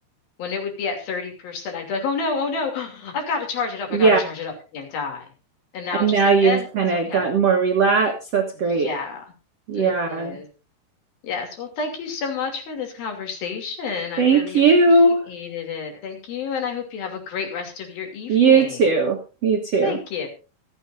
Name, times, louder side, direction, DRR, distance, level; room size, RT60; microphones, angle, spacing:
voice 1, 0.4-5.2 5.7-6.7 6.9-7.3 8.8-9.2 9.7-10.5 11.2-14.6 15.3-18.8 19.8-20.3, left 5 dB, 60° left, 3 dB, 4.5 m, -29 dB
voice 2, 6.0-8.9 9.7-10.4 14.2-15.2 18.3-20.0, right 4 dB, 75° right, 2 dB, 1.4 m, -18 dB
25.5 x 8.8 x 2.6 m, 0.33 s
omnidirectional pair, 4.9 m